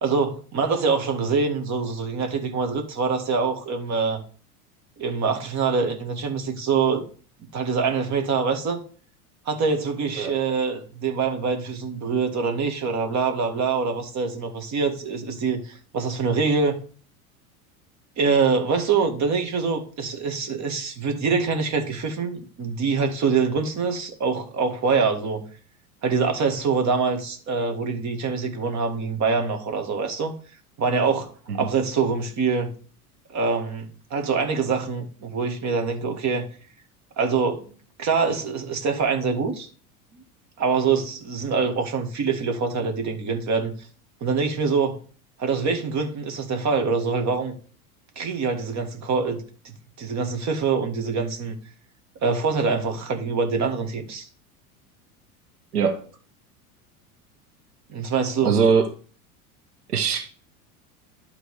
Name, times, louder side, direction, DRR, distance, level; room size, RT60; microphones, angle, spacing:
voice 1, 0.0-4.2 5.0-7.0 7.5-8.8 9.5-16.8 18.2-25.4 26.0-30.3 30.8-32.7 33.3-36.5 37.2-37.7 38.0-39.7 40.6-43.7 44.2-45.0 45.4-47.6 48.2-51.5 52.2-54.3 57.9-58.6, right 5 dB, 40° right, 2.0 m, -24 dB
voice 2, 55.7-56.1 58.4-58.9 59.9-60.3, right 6 dB, 90° right, 1.2 m, -21 dB
11.5 x 3.9 x 4.9 m
hypercardioid pair, 85°, 45 cm